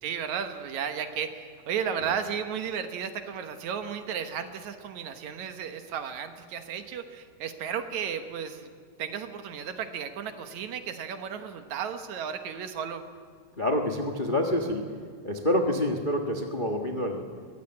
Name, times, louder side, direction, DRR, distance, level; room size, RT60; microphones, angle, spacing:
voice 1, 0.0-8.7 9.0-13.0, right 7 dB, 70° right, 8 dB, 2.4 m, -34 dB
voice 2, 13.6-14.9 15.2-17.3, left 1 dB, 75° left, 2 dB, 0.4 m, -27 dB
22.5 x 15.5 x 8.7 m, 2.1 s
omnidirectional pair, 3.6 m